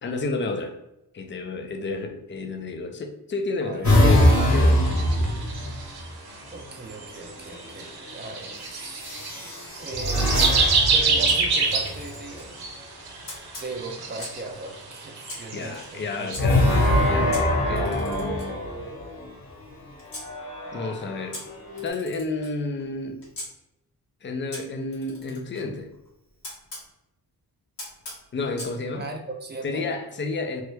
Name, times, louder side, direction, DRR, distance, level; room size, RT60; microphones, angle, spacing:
voice 1, 0.0-0.8 1.1-4.9 15.5-16.7 17.1-18.6 20.7-21.4 21.8-23.2 24.2-25.9 28.3-29.0 29.6-30.6, left 3 dB, 30° left, 5 dB, 0.5 m, -31 dB
voice 2, 3.6-3.9 6.5-9.2 9.8-10.6 10.9-12.6 13.6-16.6 28.9-29.8, right 2 dB, 25° right, 2 dB, 0.6 m, -38 dB
sound 1, 3.8-6.1 7.4-7.8 9.0-12.4 16.3-19.3 20.0-21.9, left 1 dB, 60° left, 1.3 m, -23 dB
sound 2, 4.6-6.3 6.9-7.3 7.8-9.4 9.7-16.4, right 4 dB, 70° right, 0.8 m, -26 dB
Camera, 11.3-12.5 13.3-14.5 15.3-16.4 17.3-20.3 21.3-23.5 24.5-26.9 27.8-28.8, left 1 dB, 85° left, 1.5 m, -42 dB
3.1 x 2.2 x 3.2 m, 0.88 s
cardioid pair, 85°, 39 cm